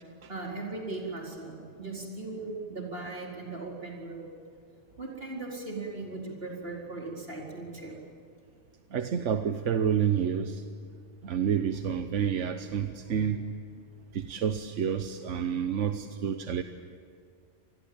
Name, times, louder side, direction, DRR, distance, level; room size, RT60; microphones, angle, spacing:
voice 1, 0.3-4.3 5.0-7.9, right 3 dB, 55° right, -2 dB, 4.8 m, -38 dB
voice 2, 8.9-10.6 11.2-13.5 14.1-16.6, right 8 dB, 90° right, 8 dB, 1.2 m, -29 dB
28.0 x 20.0 x 8.8 m, 2.3 s
omnidirectional pair, 1.2 m